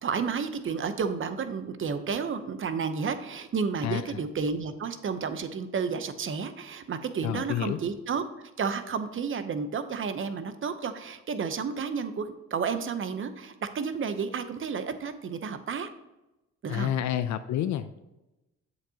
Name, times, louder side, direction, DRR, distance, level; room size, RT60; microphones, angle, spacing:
voice 1, 0.0-15.9 16.6-16.9, right 5 dB, 40° right, 10 dB, 0.8 m, -31 dB
voice 2, 3.8-4.2 7.2-7.8 16.7-18.0, left 11 dB, 70° left, 11 dB, 0.5 m, -29 dB
8.0 x 7.4 x 2.9 m, 0.97 s
cardioid pair, 90°, 30 cm